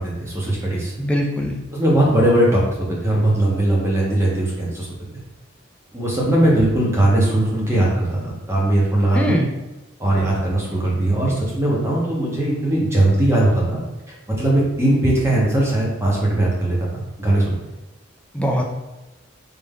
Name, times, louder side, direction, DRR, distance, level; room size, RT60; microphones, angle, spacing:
voice 1, 0.0-0.9 1.7-2.6 2.9-4.9 5.9-8.2 8.5-9.4 10.0-13.8 14.3-17.6, right 1 dB, 15° right, -4 dB, 0.8 m, -19 dB
voice 2, 1.0-1.6 9.1-9.5 18.3-18.6, equal, 5° left, 1 dB, 0.4 m, -21 dB
3.4 x 2.6 x 3.6 m, 1.1 s
head